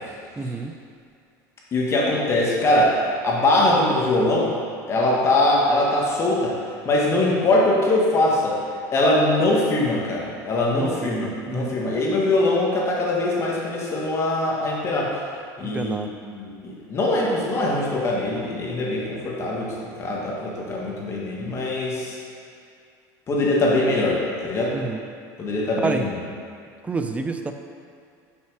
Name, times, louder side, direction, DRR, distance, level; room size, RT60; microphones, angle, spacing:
voice 1, 0.4-0.7 10.7-11.8 15.6-16.1 24.7-25.0 25.8-26.1 26.8-27.5, right 3 dB, 15° right, 6 dB, 0.5 m, -28 dB
voice 2, 1.7-4.5 4.9-6.5 6.8-8.6 8.9-15.1 15.6-22.2 23.3-24.7 25.4-26.1, left 2 dB, 30° left, -4 dB, 1.5 m, -22 dB
5.8 x 5.6 x 4.7 m, 2.3 s
supercardioid pair, 130°, 9 cm